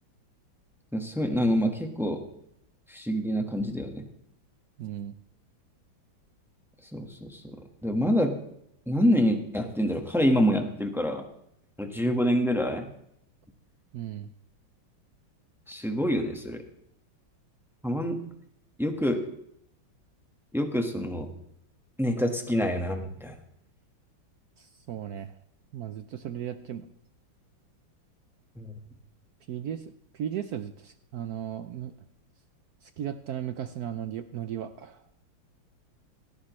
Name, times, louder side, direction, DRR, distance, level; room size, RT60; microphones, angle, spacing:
voice 1, 0.9-2.2 2.9-4.1 6.9-7.6 7.8-8.3 8.9-11.3 11.8-12.9 15.7-16.6 17.8-18.2 18.8-19.2 20.5-21.3 22.0-23.4 28.6-28.7, equal, ahead, 4 dB, 1.1 m, -26 dB
voice 2, 4.8-5.2 13.9-14.3 24.6-25.3 25.7-26.9 29.5-31.9 32.8-35.0, right 10 dB, 70° right, 10 dB, 0.9 m, -36 dB
17.0 x 14.0 x 3.2 m, 0.73 s
omnidirectional pair, 2.2 m